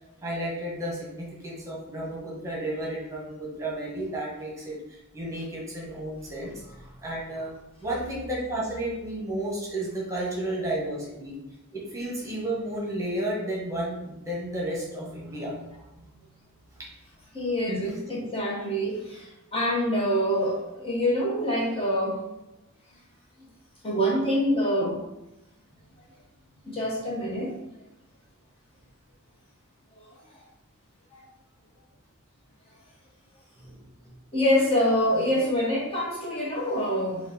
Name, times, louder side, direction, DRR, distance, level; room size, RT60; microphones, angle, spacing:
voice 1, 0.2-7.5 7.8-11.4 11.7-16.0 16.8-16.9 33.6-33.8, right 1 dB, 15° right, -5 dB, 1.2 m, -32 dB
voice 2, 17.3-22.2 23.8-25.0 26.6-27.5 29.9-30.0 31.1-31.2 34.3-37.3, equal, 25° left, -5 dB, 0.9 m, -26 dB
4.4 x 2.4 x 4.2 m, 0.91 s
head